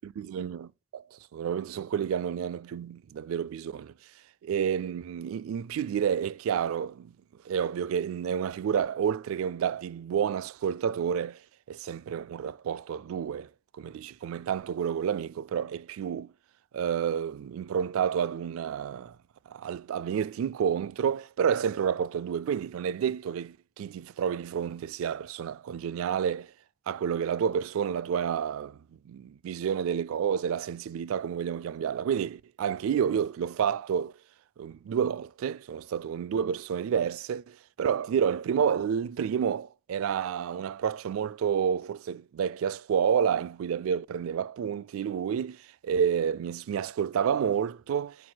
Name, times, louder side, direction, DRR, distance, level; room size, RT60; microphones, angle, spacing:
voice 1, 0.0-3.9 4.4-7.1 7.4-11.4 11.7-13.5 13.8-16.3 16.7-19.2 19.5-26.5 26.9-28.8 29.1-34.1 34.6-48.3, right 7 dB, 70° right, 0.3 m, -30 dB
16.0 x 6.1 x 2.2 m
head